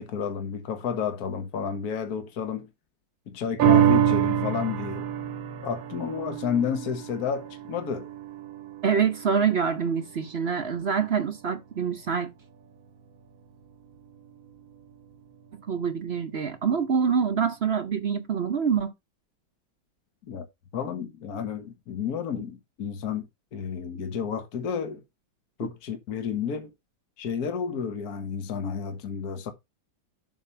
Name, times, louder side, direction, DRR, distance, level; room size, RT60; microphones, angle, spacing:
voice 1, 0.0-2.7 3.3-5.1 5.6-8.1 20.3-20.5 20.7-23.3 23.5-25.0 25.6-26.7 27.2-29.5, left 7 dB, 55° left, 1.6 m, -31 dB
sound 1, 3.6-10.3 10.7-10.8, right 10 dB, 80° right, 1.6 m, -26 dB
voice 2, 8.8-12.3 15.5-18.9 24.0-24.1 25.6-25.7, right 6 dB, 55° right, 0.7 m, -26 dB
7.6 x 3.5 x 5.5 m
omnidirectional pair, 2.1 m